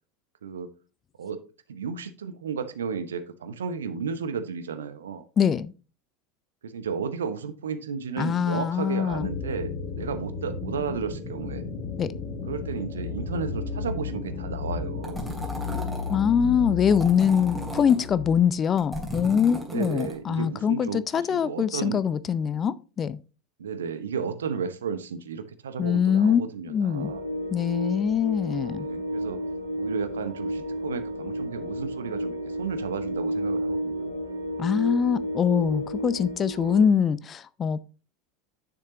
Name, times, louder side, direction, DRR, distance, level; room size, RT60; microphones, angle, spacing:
voice 1, 1.7-5.3 6.6-11.6 12.5-15.3 19.7-22.0 23.6-27.2 28.8-29.4 29.7-34.2, right 6 dB, 70° right, 0.7 m, -33 dB
voice 2, 5.4-5.7 8.2-9.3 12.0-12.1 16.1-23.2 25.8-27.1 27.5-28.9 34.6-37.8, left 7 dB, 30° left, 0.4 m, -23 dB
sound 1, 9.1-18.4, left 5 dB, 55° left, 2.1 m, -34 dB
sound 2, 15.0-16.2 16.9-18.1 18.6-20.2, right 1 dB, 5° right, 2.8 m, -35 dB
sound 3, 26.9-36.8, equal, 90° right, 1.5 m, -32 dB
9.6 x 6.6 x 2.8 m
figure-of-eight pair, 75°, 0 cm